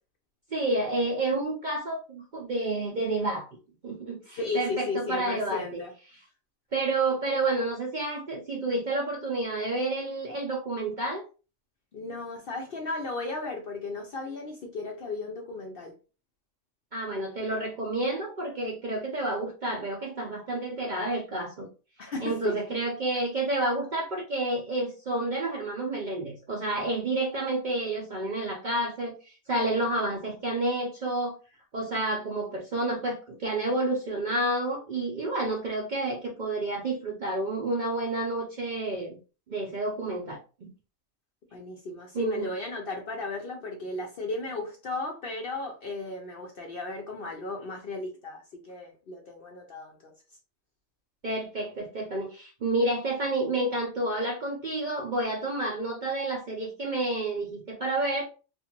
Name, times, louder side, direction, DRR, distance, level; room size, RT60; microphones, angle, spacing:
voice 1, 0.5-3.5 3.8-5.8 6.1-6.2 6.7-11.2 16.9-21.7 22.2-31.4 31.7-39.2 39.5-40.7 42.1-42.5 51.2-58.2, right 2 dB, 55° right, 0.5 m, -30 dB
voice 2, 4.4-5.9 11.9-15.9 22.0-22.6 41.5-50.1, left 3 dB, 60° left, 0.6 m, -35 dB
2.5 x 2.4 x 2.8 m
omnidirectional pair, 1.4 m